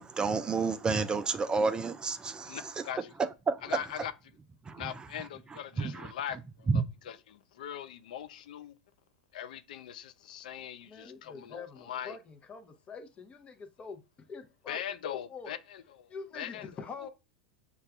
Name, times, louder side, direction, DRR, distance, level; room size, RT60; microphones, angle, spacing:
voice 1, 0.0-2.8 3.2-3.8 4.7-5.1 5.5-6.1 6.7-6.8, right 4 dB, 20° right, 0.3 m, -30 dB
voice 2, 2.4-3.1 3.6-4.1 4.8-6.7 7.0-8.7 9.3-12.2 14.7-16.1 16.3-16.7, left 10 dB, 70° left, 0.4 m, -41 dB
voice 3, 10.8-14.0 14.3-15.0 15.3-15.6 16.1-17.1, left 5 dB, 25° left, 0.8 m, -45 dB
6.5 x 2.3 x 2.3 m
hypercardioid pair, 95°, 5 cm